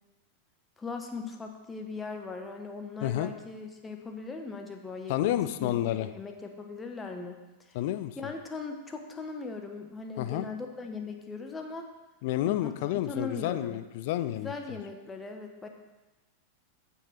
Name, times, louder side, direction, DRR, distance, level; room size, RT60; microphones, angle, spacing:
voice 1, 0.8-7.4 8.2-11.9 12.5-13.8 14.3-15.7, left 4 dB, 15° left, 3 dB, 1.3 m, -39 dB
voice 2, 3.0-3.3 5.1-6.1 7.7-8.3 10.2-10.5 12.2-14.8, left 13 dB, 50° left, 11 dB, 0.5 m, -30 dB
14.5 x 5.6 x 4.2 m, 1.1 s
figure-of-eight pair, 90°, 0 cm